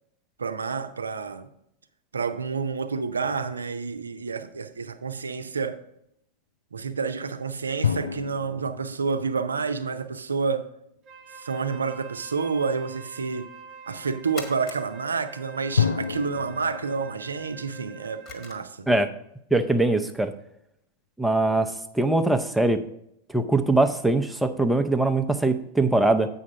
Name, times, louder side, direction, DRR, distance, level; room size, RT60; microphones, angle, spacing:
voice 1, 0.4-1.5 2.1-5.8 6.7-10.7 11.3-13.5 13.9-18.9, right 5 dB, 75° right, 0.6 m, -29 dB
sound 1, 3.2-4.9 7.8-10.5 15.8-18.8, left 6 dB, 75° left, 0.4 m, -31 dB
Wind instrument woodwind instrument, 11.0-18.7, right 4 dB, 30° right, 1.0 m, -46 dB
sound 2, 11.3-12.0 12.5-12.9 13.3-13.4 13.9-16.0 16.4-16.6 16.9-19.0, left 4 dB, 35° left, 1.6 m, -45 dB
voice 2, 19.5-20.3 21.2-22.8 23.3-26.3, right 2 dB, 5° right, 0.6 m, -22 dB
8.4 x 5.7 x 4.9 m
figure-of-eight pair, 90°, 0 cm